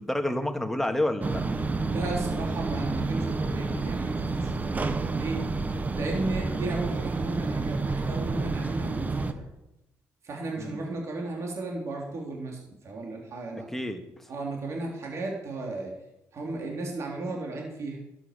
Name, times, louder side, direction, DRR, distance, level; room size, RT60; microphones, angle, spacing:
voice 1, 0.0-1.4 10.6-10.8 13.7-14.2, left 1 dB, 5° left, 5 dB, 1.8 m, -29 dB
sound 1, 1.2-9.3, right 3 dB, 30° right, 1.1 m, -29 dB
voice 2, 1.9-5.6 5.9-9.5 10.2-13.7 14.3-15.9 16.3-18.0, right 2 dB, 55° right, -1 dB, 3.4 m, -35 dB
12.0 x 9.2 x 6.7 m, 0.92 s
cardioid pair, 85°, 6 cm